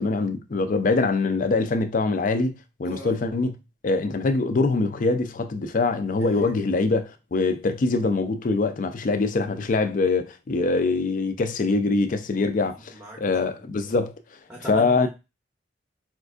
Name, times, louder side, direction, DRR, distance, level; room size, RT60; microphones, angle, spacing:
voice 1, 0.0-2.5 2.8-3.6 3.8-12.8 13.2-14.1 14.7-15.1, left 3 dB, 45° left, 0.4 m, -23 dB
voice 2, 12.4-13.9 14.5-15.1, equal, 10° right, 0.6 m, -42 dB
4.4 x 2.4 x 2.4 m
head